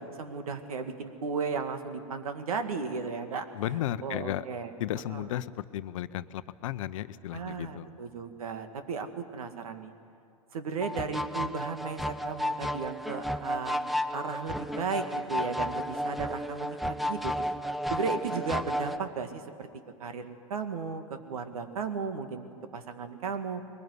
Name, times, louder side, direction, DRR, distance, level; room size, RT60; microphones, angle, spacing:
voice 1, 0.0-3.5 4.0-4.7 5.1-5.3 7.3-9.9 10.5-13.8 14.1-17.3 17.9-19.7 20.0-23.6, right 5 dB, 70° right, 7 dB, 2.2 m, -35 dB
voice 2, 3.5-4.4 4.8-7.9, left 12 dB, 60° left, 14 dB, 0.8 m, -34 dB
sound 1, 10.8-19.0, equal, ahead, 0.7 m, -33 dB
22.0 x 20.0 x 9.7 m, 2.4 s
hypercardioid pair, 105°, 19 cm